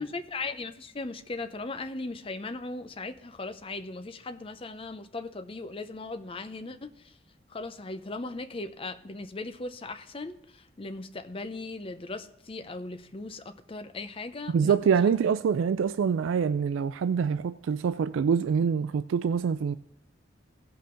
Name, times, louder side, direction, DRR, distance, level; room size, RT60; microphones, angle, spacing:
voice 1, 0.0-7.2 7.5-14.9, left 3 dB, 25° left, 0.5 m, -38 dB
voice 2, 14.5-19.7, right 6 dB, 75° right, 0.3 m, -25 dB
16.5 x 5.7 x 3.8 m
head